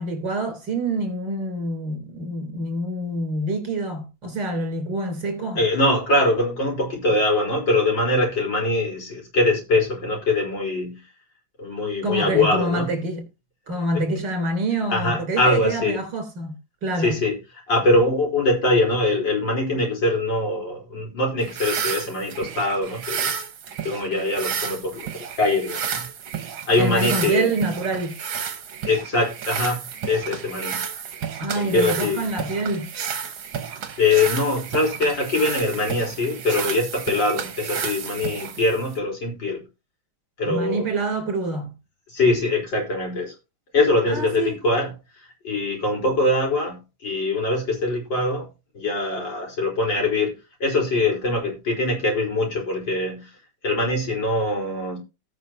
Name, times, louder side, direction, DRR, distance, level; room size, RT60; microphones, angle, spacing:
voice 1, 0.0-5.6 12.0-13.3 13.7-17.2 26.8-28.2 31.4-32.9 40.5-41.7 44.1-44.6, right 2 dB, 60° right, 4.3 m, -26 dB
voice 2, 5.5-11.0 11.6-12.9 13.9-14.0 14.9-16.0 16.9-17.4 17.7-23.3 23.8-26.1 26.6-27.5 28.9-30.8 31.5-32.2 34.0-39.6 40.4-40.9 42.1-43.3 43.7-48.5 48.7-50.3 50.6-53.3 53.6-55.0, left 2 dB, 65° left, 4.8 m, -23 dB
sound 1, 21.4-39.0, right 7 dB, 80° right, 2.1 m, -32 dB
18.5 x 6.2 x 2.8 m
omnidirectional pair, 2.1 m